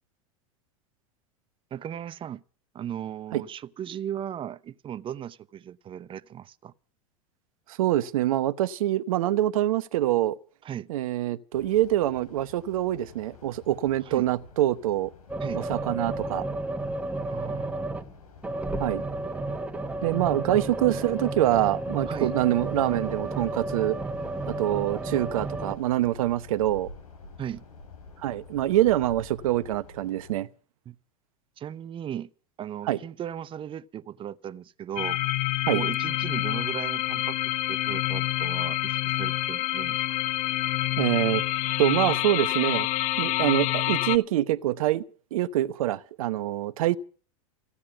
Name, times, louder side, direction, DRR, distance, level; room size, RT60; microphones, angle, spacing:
voice 1, 1.7-2.4 2.7-6.7 10.6-10.9 14.0-14.3 15.4-15.6 17.3-18.0 20.3-20.6 22.1-22.3 27.4-27.6 30.9-31.0 31.6-32.3 32.6-35.2 35.7-40.2, right 10 dB, 30° right, 0.7 m, -37 dB
voice 2, 7.8-10.4 10.9-15.1 15.5-16.5 18.8-19.0 20.0-24.0 24.5-26.9 28.2-30.5 32.9-33.0 35.7-35.8 41.0-41.4 41.8-42.9 43.2-45.0 45.3-47.0, right 13 dB, 75° right, 0.9 m, -25 dB
sound 1, 11.5-30.3, left 3 dB, 85° left, 3.8 m, -49 dB
sound 2, 15.3-18.2 18.4-25.8, right 2 dB, 10° right, 1.4 m, -32 dB
sound 3, 35.0-44.2, left 15 dB, 45° left, 0.8 m, -27 dB
15.5 x 9.6 x 8.9 m
hypercardioid pair, 100°, 18 cm